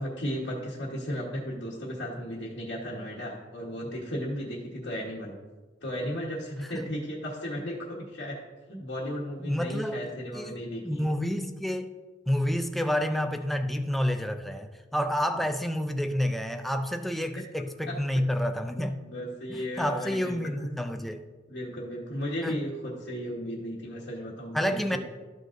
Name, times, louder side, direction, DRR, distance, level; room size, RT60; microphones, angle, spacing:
voice 1, 0.0-5.4 5.8-8.4 8.7-11.1 17.3-17.4 17.9-18.0 18.7-20.7 21.5-25.0, equal, 60° left, -6 dB, 1.2 m, -35 dB
voice 2, 9.4-10.1 10.3-10.6 10.8-11.9 12.3-19.0 19.5-21.2 22.4-22.6 24.5-25.0, equal, ahead, 7 dB, 0.4 m, -29 dB
13.0 x 6.2 x 2.6 m, 1.4 s
head